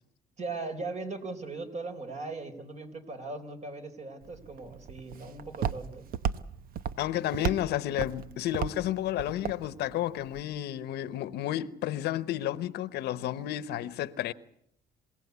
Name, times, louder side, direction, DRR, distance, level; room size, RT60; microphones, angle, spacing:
voice 1, 0.4-6.1, right 3 dB, 40° right, 4.3 m, -39 dB
Walk footsteps, 4.2-10.4, right 8 dB, 60° right, 1.0 m, -36 dB
voice 2, 7.0-14.3, left 13 dB, 75° left, 1.0 m, -31 dB
27.0 x 17.0 x 8.3 m
cardioid pair, 110°, 17 cm